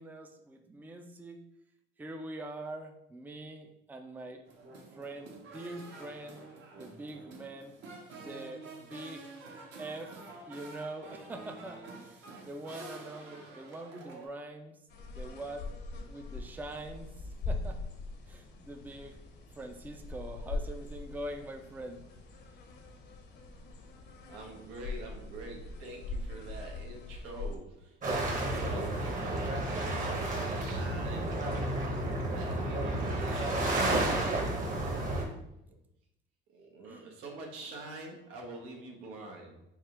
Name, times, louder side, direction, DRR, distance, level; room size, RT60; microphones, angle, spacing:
voice 1, 0.0-1.4 2.0-4.4 5.0-6.4 6.8-7.8 8.2-9.3 9.8-10.1 10.5-14.8 15.2-15.7 16.1-17.1 17.5-17.8 18.3-19.2 19.6-22.1 36.8-37.1, right 1 dB, 10° right, 4 dB, 0.4 m, -43 dB
sound 1, 4.5-14.3, right 3 dB, 60° right, 1.0 m, -48 dB
sound 2, 14.9-27.6, left 3 dB, 55° left, 0.8 m, -42 dB
voice 2, 24.3-31.4 32.3-33.8 35.7-35.8 36.5-39.6, right 2 dB, 85° right, 1 dB, 1.0 m, -46 dB
sound 3, 28.0-35.2, right 1 dB, 40° right, 1.1 m, -31 dB
3.5 x 2.4 x 4.4 m, 0.81 s
cardioid pair, 95°, 21 cm